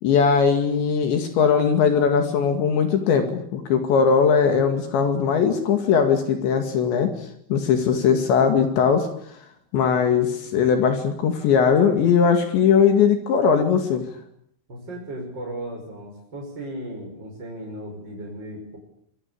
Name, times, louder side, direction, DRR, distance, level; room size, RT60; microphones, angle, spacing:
voice 1, 0.0-7.1 7.5-9.1 9.7-14.1, left 6 dB, 70° left, 6 dB, 4.4 m, -19 dB
voice 2, 14.7-18.8, right 1 dB, 25° right, -1 dB, 6.3 m, -36 dB
26.0 x 23.0 x 8.5 m, 0.69 s
omnidirectional pair, 5.4 m